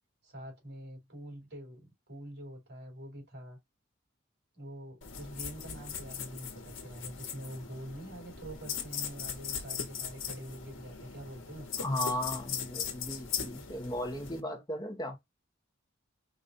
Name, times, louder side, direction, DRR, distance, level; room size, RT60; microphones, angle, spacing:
voice 1, 0.2-3.6 4.5-11.9, right 1 dB, 55° right, 3.5 m, -45 dB
sound 1, 5.0-14.4, left 7 dB, 75° left, 1.2 m, -39 dB
voice 2, 11.8-15.2, left 1 dB, 20° left, 0.9 m, -36 dB
5.1 x 2.4 x 4.1 m
head